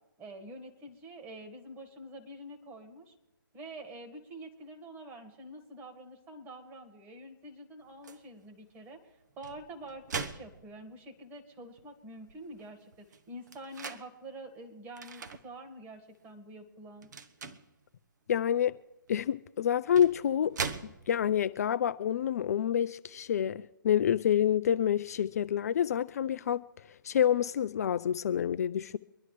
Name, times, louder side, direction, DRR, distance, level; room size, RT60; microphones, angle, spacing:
voice 1, 0.2-3.1 3.5-17.1, right 1 dB, 15° right, 1.9 m, -47 dB
sound 1, 8.0-8.3 9.2-11.2 11.8-11.9 12.1-14.1 15.0-15.4 15.9-16.2 17.0-17.7 19.1-19.2 19.8-21.4, right 5 dB, 55° right, 1.1 m, -40 dB
voice 2, 18.3-18.7 19.1-20.6 21.1-26.6 27.0-29.0, left 9 dB, 45° left, 0.4 m, -28 dB
24.5 x 11.0 x 3.3 m
figure-of-eight pair, 140°, 11 cm